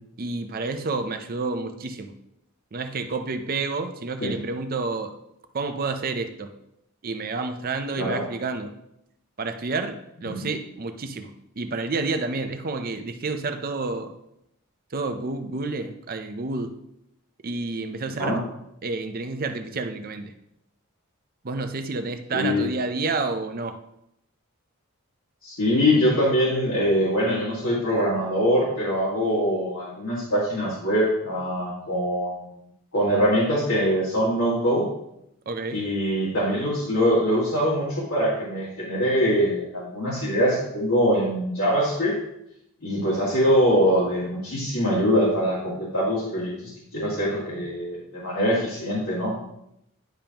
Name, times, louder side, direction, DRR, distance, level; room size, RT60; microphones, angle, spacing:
voice 1, 0.2-2.1 2.7-5.2 5.5-6.5 7.0-8.7 9.4-11.3 11.6-14.1 14.9-16.7 17.4-18.4 18.8-20.3 21.4-23.8 35.5-35.8, right 3 dB, 40° right, 8 dB, 0.5 m, -29 dB
voice 2, 22.3-22.6 25.4-32.5 32.9-34.9 35.7-42.2 42.8-49.4, equal, 70° left, -8 dB, 2.0 m, -23 dB
10.0 x 5.2 x 2.9 m, 0.80 s
head